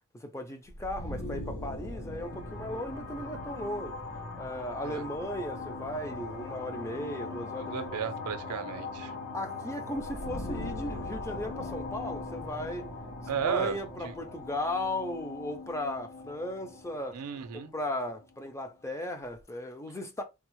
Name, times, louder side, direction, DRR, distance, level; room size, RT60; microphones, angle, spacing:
voice 1, 0.1-4.0 4.4-8.0 9.3-12.9 13.4-17.2 17.5-20.2, left 1 dB, 15° left, 0.4 m, -36 dB
sound 1, 0.7-18.3, left 3 dB, 70° left, 1.0 m, -40 dB
voice 2, 7.6-9.1 13.3-13.8 14.0-14.1 17.1-17.7, right 7 dB, 85° right, 0.5 m, -34 dB
3.4 x 2.0 x 3.0 m
head